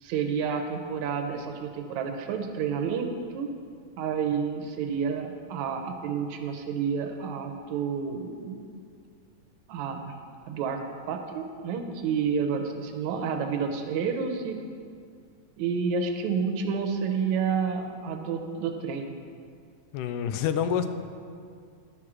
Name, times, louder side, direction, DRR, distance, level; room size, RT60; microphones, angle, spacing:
voice 1, 0.0-3.1 3.3-3.5 4.0-8.6 9.7-10.1 10.5-10.8 11.1-14.6 15.6-19.1, right 6 dB, 75° right, 5 dB, 1.9 m, -30 dB
voice 2, 19.9-20.9, left 8 dB, 85° left, 9 dB, 2.1 m, -27 dB
10.5 x 6.1 x 6.1 m, 2.2 s
omnidirectional pair, 3.6 m